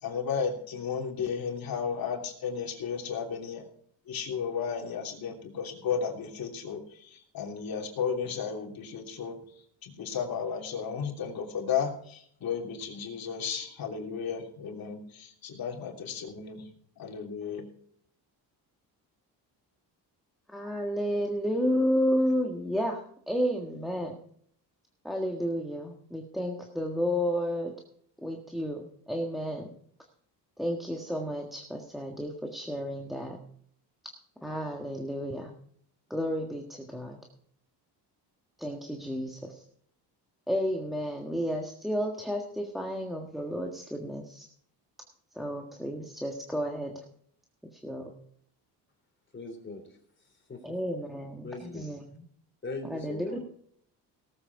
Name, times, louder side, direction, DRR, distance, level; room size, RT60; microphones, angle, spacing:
voice 1, 0.0-3.6 4.1-9.4 9.8-16.7 17.0-17.7, left 6 dB, 55° left, 0 dB, 3.2 m, -34 dB
voice 2, 20.5-24.2 25.0-27.7 28.2-29.7 30.6-33.4 34.0-34.1 34.4-35.5 36.1-37.2 38.6-39.6 40.5-44.4 45.3-47.0 47.7-48.1 50.6-51.5 51.7-52.0 52.9-53.4, equal, ahead, 1 dB, 1.6 m, -31 dB
voice 3, 49.3-50.8 51.4-52.0 52.6-53.4, left 3 dB, 25° left, 5 dB, 3.5 m, -41 dB
18.0 x 8.0 x 4.7 m, 0.63 s
cardioid pair, 110°, 41 cm